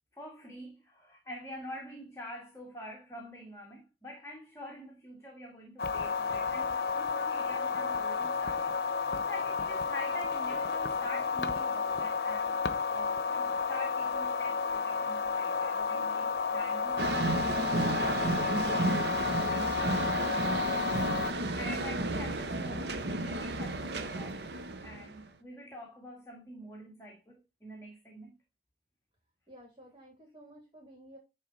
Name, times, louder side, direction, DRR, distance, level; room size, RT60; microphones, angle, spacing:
voice 1, 0.1-12.6 12.9-19.0 19.3-20.7 21.6-24.5 24.8-28.3, equal, 15° left, 1.9 m, -46 dB
sound 1, 5.8-21.3, left 5 dB, 65° left, 0.8 m, -32 dB
sound 2, 17.0-25.3, right 2 dB, 75° right, 1.0 m, -32 dB
voice 2, 29.5-31.2, right 1 dB, 25° right, 3.3 m, -53 dB
10.0 x 3.8 x 4.2 m
head